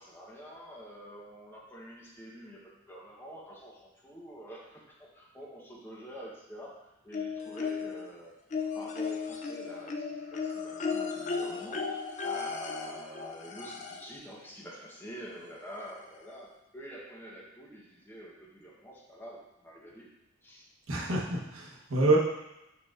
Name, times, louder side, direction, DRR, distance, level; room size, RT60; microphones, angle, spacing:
voice 1, 0.0-8.3 8.8-20.1 20.4-20.7, equal, 10° left, -4 dB, 0.8 m, -47 dB
sound 1, 7.1-8.1 8.5-14.2 15.4-15.5 15.9-16.0, left 5 dB, 35° left, 0.4 m, -35 dB
voice 2, 20.9-22.2, right 2 dB, 80° right, -3 dB, 0.9 m, -27 dB
4.9 x 4.4 x 2.4 m, 0.92 s
head